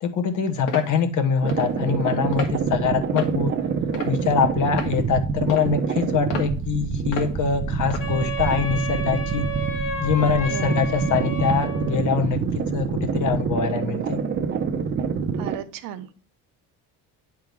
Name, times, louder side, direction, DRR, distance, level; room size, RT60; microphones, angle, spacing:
voice 1, 0.0-3.5 4.0-9.5 10.0-12.4 12.7-14.2, left 6 dB, 55° left, 6 dB, 1.2 m, -24 dB
sound 1, 0.7-0.9 1.5-1.7 2.3-2.5 3.2-3.4 3.9-4.3 4.7-4.9 5.5-5.7 6.3-6.5 7.1-7.3 7.9-8.1, left 5 dB, 80° left, 1.8 m, -31 dB
sound 2, 1.4-15.6, right 5 dB, 30° right, 0.7 m, -26 dB
Wind instrument woodwind instrument, 8.0-12.1, right 1 dB, 35° left, 1.8 m, -31 dB
voice 2, 10.5-10.9 15.4-16.1, right 11 dB, 65° right, 9 dB, 0.9 m, -35 dB
9.4 x 3.7 x 4.6 m, 0.40 s
cardioid pair, 155°, 36 cm